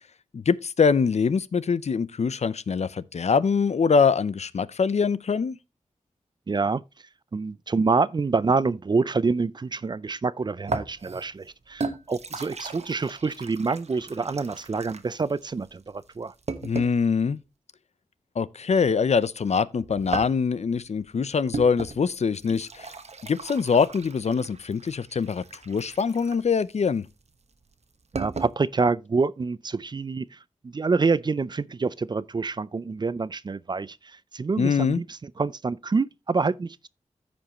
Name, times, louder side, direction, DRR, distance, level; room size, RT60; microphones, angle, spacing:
voice 1, 0.3-5.6 16.6-17.4 18.4-22.9 23.3-27.1 34.6-35.0, left 5 dB, 60° left, 0.5 m, -23 dB
voice 2, 6.5-6.8 7.3-16.3 28.1-30.4 30.6-34.0 34.3-36.9, right 4 dB, 35° right, 0.4 m, -26 dB
sound 1, 10.7-17.1 19.8-28.5, right 4 dB, 60° right, 1.1 m, -37 dB
14.5 x 5.2 x 2.9 m
wide cardioid pair, 95°, 13 cm